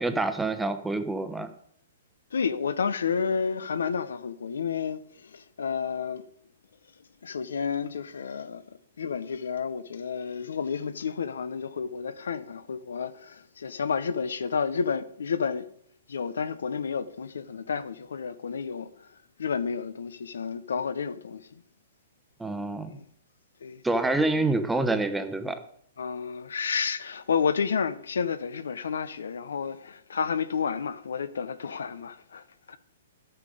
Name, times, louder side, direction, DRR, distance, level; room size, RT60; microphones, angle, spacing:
voice 1, 0.0-1.5 22.4-22.9 23.8-25.6, right 2 dB, 5° right, 0.9 m, -27 dB
voice 2, 2.3-6.2 7.2-8.6 9.0-15.7 16.1-19.1 19.4-21.5 22.9-23.1 23.6-24.0 26.0-32.8, left 6 dB, 85° left, 0.8 m, -31 dB
11.0 x 8.9 x 5.0 m
hypercardioid pair, 145°, 0 cm